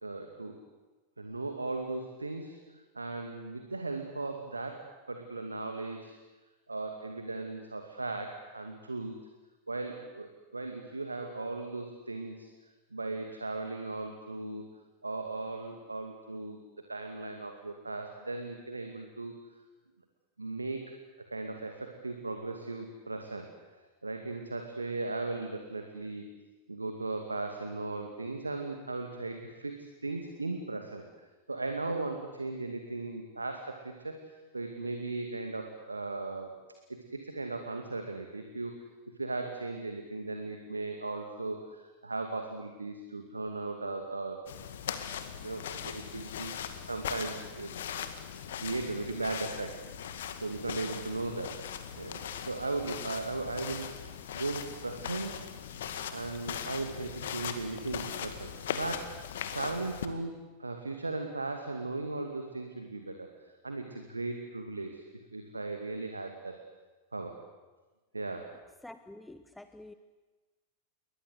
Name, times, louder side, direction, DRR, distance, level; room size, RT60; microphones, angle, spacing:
voice 1, 0.0-0.6 1.2-2.6 2.9-6.2 6.7-9.2 9.7-14.6 15.0-16.6 16.9-19.3 20.4-21.0 21.3-26.3 26.7-31.0 31.5-36.6 36.9-38.8 39.2-44.4 44.9-45.0 45.4-46.5 46.9-47.7 48.5-55.5 56.1-59.1 59.5-65.0 65.3-66.6 67.1-67.4 68.1-68.5, right 3 dB, 80° right, 5 dB, 2.3 m, -37 dB
sound 1, 44.5-60.1, left 8 dB, 60° left, 2.1 m, -40 dB
voice 2, 68.8-69.9, left 1 dB, 5° left, 11 dB, 1.0 m, -48 dB
29.0 x 23.0 x 8.2 m, 1.2 s
figure-of-eight pair, 90°, 0 cm